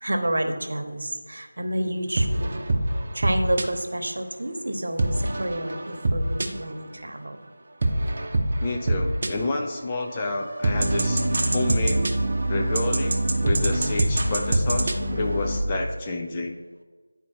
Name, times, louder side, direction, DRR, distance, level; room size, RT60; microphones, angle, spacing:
voice 1, 0.0-2.6 3.2-5.1 5.4-7.3, right 1 dB, 65° right, 5 dB, 1.0 m, -29 dB
sound 1, 2.2-3.6 5.0-6.8 7.8-9.3 10.0-15.6, right 1 dB, 40° right, 0.8 m, -24 dB
voice 2, 8.6-11.2 11.5-12.0 12.5-16.6, left 2 dB, 20° left, 1 dB, 0.5 m, -29 dB
10.0 x 4.3 x 4.5 m, 1.4 s
figure-of-eight pair, 170°, 0 cm